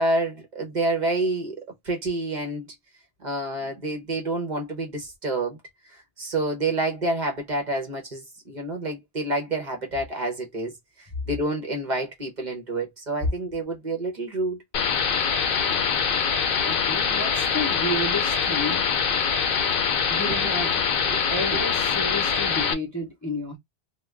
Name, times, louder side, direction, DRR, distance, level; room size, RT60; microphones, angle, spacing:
voice 1, 0.0-1.6 1.8-2.6 3.2-5.6 6.2-10.7 11.3-14.6 20.2-20.5 21.0-21.2 21.5-21.6, right 2 dB, 45° right, 0.9 m, -28 dB
sound 1, 14.7-22.7, left 6 dB, 60° left, 0.7 m, -24 dB
voice 2, 15.5-16.2 16.6-18.8 20.1-20.8 21.3-23.6, left 1 dB, 20° left, 0.7 m, -32 dB
2.4 x 2.3 x 3.2 m
omnidirectional pair, 1.1 m